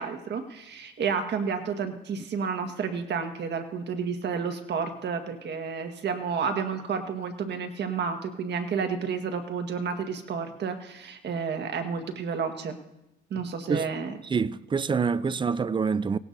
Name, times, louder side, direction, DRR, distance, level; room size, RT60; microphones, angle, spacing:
voice 1, 0.0-12.8 13.3-14.1, right 6 dB, 60° right, 1.6 m, -31 dB
voice 2, 14.2-16.2, right 5 dB, 25° right, 0.4 m, -26 dB
18.0 x 16.5 x 2.7 m
cardioid pair, 90°, 20 cm